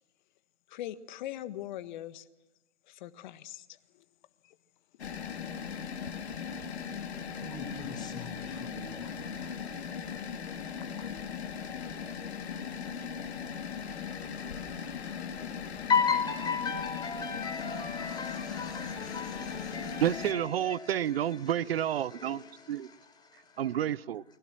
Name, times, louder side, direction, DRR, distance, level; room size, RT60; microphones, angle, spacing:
voice 1, 0.7-2.2 2.9-3.6, left 13 dB, 40° left, 1.6 m, -40 dB
sound 1, 5.0-20.3, left 7 dB, 65° left, 2.6 m, -38 dB
voice 2, 7.4-9.5 15.9-21.5 22.1-23.6, left 6 dB, 10° left, 4.8 m, -35 dB
voice 3, 20.0-22.9 23.6-24.2, right 10 dB, 55° right, 0.9 m, -30 dB
29.5 x 21.5 x 6.2 m
figure-of-eight pair, 125°, 35 cm